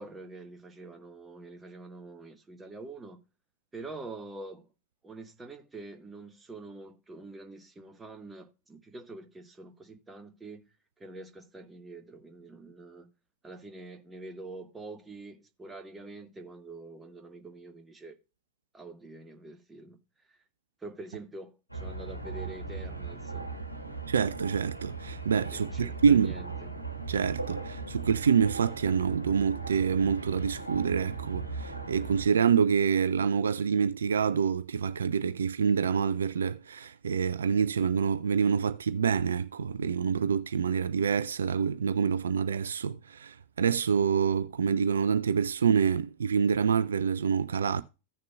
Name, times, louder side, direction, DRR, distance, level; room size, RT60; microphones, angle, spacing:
voice 1, 0.0-3.2 3.7-4.7 5.0-10.7 11.0-13.1 13.4-18.2 18.7-20.0 20.3-20.4 20.8-23.5 25.5-26.7, right 2 dB, 15° right, 1.3 m, -45 dB
sound 1, 21.7-32.2, right 4 dB, 85° right, 1.4 m, -38 dB
voice 2, 24.1-26.3 27.1-47.8, right 6 dB, 70° right, 0.4 m, -27 dB
16.0 x 6.6 x 2.3 m
figure-of-eight pair, 90°, 0 cm